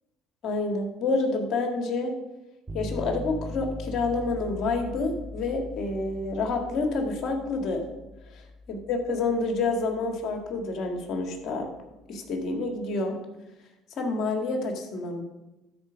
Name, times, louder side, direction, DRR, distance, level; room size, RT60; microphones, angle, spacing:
voice 1, 0.4-2.1 2.7-7.8 8.7-11.7 12.1-13.2 14.0-15.2, left 3 dB, 60° left, 4 dB, 2.0 m, -28 dB
sound 1, 2.7-12.6, left 2 dB, 20° right, 1.5 m, -41 dB
12.5 x 4.5 x 5.1 m, 1.0 s
supercardioid pair, 75°, 0 cm